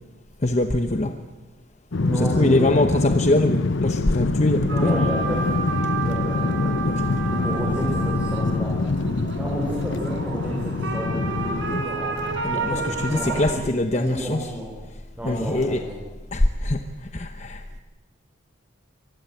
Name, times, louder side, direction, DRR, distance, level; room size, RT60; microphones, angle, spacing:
voice 1, 0.4-1.1 2.2-4.9 6.9-7.0 12.4-14.4 15.2-15.8 16.3-16.8 17.1-17.8, left 1 dB, 35° left, 7 dB, 1.0 m, -23 dB
sound 1, 1.9-11.8, left 3 dB, 70° left, 0.7 m, -25 dB
voice 2, 2.0-2.8 4.7-5.5 6.0-6.7 7.3-8.8 9.4-12.2 12.5-13.6 13.9-14.7 15.2-16.0, equal, 10° right, -3 dB, 5.3 m, -31 dB
sound 2, 4.7-13.5, right 4 dB, 65° right, 4.4 m, -30 dB
25.0 x 20.0 x 7.9 m, 1.3 s
head